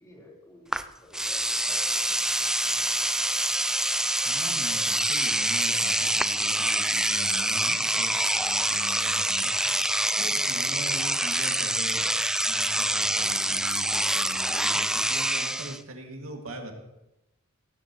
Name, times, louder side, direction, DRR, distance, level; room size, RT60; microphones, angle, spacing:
voice 1, 0.0-3.0 10.5-10.6, left 1 dB, 15° left, -4 dB, 3.9 m, -53 dB
Engine / Domestic sounds home sounds, 0.7-0.8 1.1-15.8, right 1 dB, 5° right, 0.3 m, -26 dB
voice 2, 4.2-16.7, right 1 dB, 75° right, 2 dB, 2.3 m, -41 dB
18.0 x 15.0 x 3.1 m, 0.92 s
head